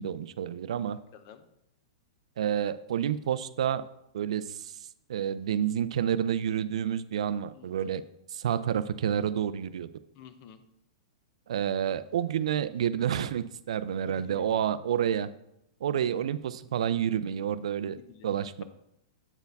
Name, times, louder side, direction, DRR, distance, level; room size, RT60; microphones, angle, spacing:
voice 1, 0.0-1.0 2.4-3.8 4.1-4.7 5.1-8.0 8.3-9.9 11.5-15.3 15.8-18.0 18.2-18.6, right 9 dB, 75° right, 15 dB, 0.4 m, -29 dB
voice 2, 1.1-1.5 7.5-8.0 10.2-10.6 14.1-14.6 18.1-18.3, left 8 dB, 40° left, 10 dB, 0.6 m, -50 dB
7.9 x 4.5 x 3.5 m, 0.80 s
hypercardioid pair, 155°, 3 cm